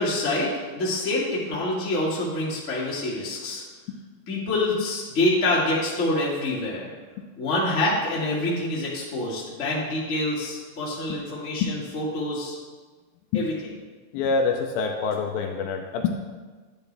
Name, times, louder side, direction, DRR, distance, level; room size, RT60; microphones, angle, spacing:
voice 1, 0.0-3.6 4.3-6.9 7.4-12.6 13.3-13.5, left 1 dB, 25° left, -6 dB, 1.9 m, -26 dB
voice 2, 14.1-16.1, left 5 dB, 80° left, 2 dB, 2.4 m, -25 dB
11.0 x 9.1 x 3.4 m, 1.4 s
omnidirectional pair, 4.4 m